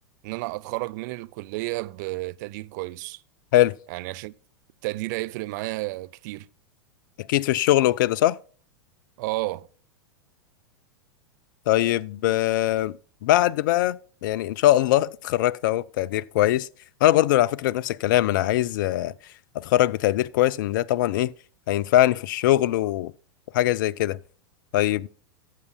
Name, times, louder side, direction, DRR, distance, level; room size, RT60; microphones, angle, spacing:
voice 1, 0.2-3.2 3.9-4.3 4.8-6.5 9.2-9.7, right 21 dB, 50° right, 0.5 m, -31 dB
voice 2, 7.2-8.4 11.7-16.7 17.0-19.1 19.5-21.3 21.7-23.1 23.5-24.2 24.7-25.1, left 14 dB, 55° left, 0.4 m, -22 dB
17.0 x 8.2 x 2.3 m
figure-of-eight pair, 90°, 13 cm